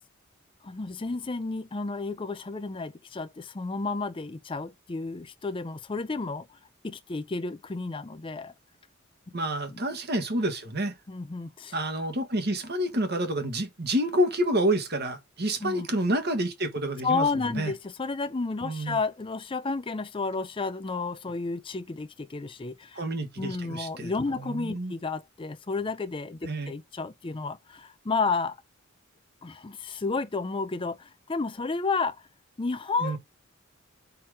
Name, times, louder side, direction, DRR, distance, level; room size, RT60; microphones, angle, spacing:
voice 1, 0.6-6.6 6.8-8.5 9.7-9.8 11.1-11.8 15.6-15.9 17.0-23.0 23.4-28.6 29.4-32.2 32.6-33.2, left 4 dB, 25° left, 0.5 m, -31 dB
voice 2, 9.3-10.9 11.7-17.3 17.5-17.7 18.6-19.0 22.9-24.1 24.4-24.9 26.4-26.7 33.0-33.2, right 1 dB, 50° right, 1.6 m, -28 dB
5.0 x 4.3 x 5.9 m
head